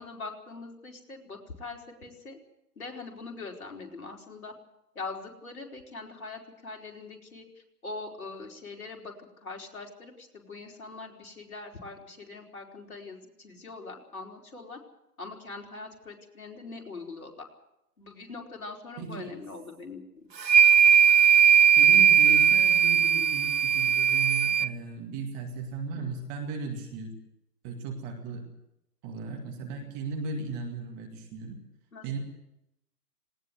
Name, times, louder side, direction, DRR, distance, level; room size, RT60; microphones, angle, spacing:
voice 1, 0.0-2.4 2.8-4.5 4.9-7.5 7.8-14.8 15.2-17.5 18.0-20.3 25.9-26.1 31.9-32.2, left 3 dB, 55° left, 0 dB, 4.7 m, -42 dB
voice 2, 19.0-19.3 21.7-27.2 27.6-28.4 29.0-31.6 32.0-32.2, right 4 dB, 15° right, 2 dB, 2.2 m, -36 dB
sound 1, 20.4-24.7, right 8 dB, 90° right, 0.8 m, -19 dB
19.5 x 19.0 x 7.9 m, 0.85 s
figure-of-eight pair, 145°, 49 cm